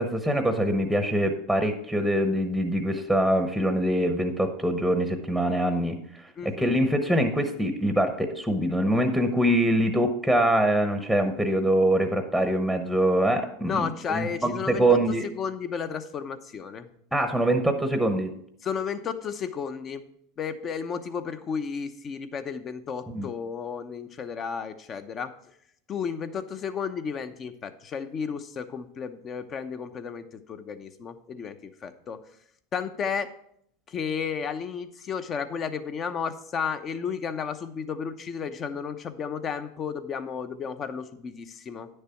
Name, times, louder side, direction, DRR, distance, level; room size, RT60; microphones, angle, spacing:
voice 1, 0.0-6.0 6.4-15.2 17.1-18.3 23.1-23.3, right 1 dB, 5° left, 7 dB, 1.0 m, -24 dB
voice 2, 6.4-6.7 13.6-16.9 18.6-20.0 20.4-25.3 25.9-32.2 32.7-33.3 33.9-41.9, left 6 dB, 35° left, 10 dB, 0.8 m, -33 dB
9.9 x 6.7 x 4.5 m, 0.70 s
hypercardioid pair, 105°, 0 cm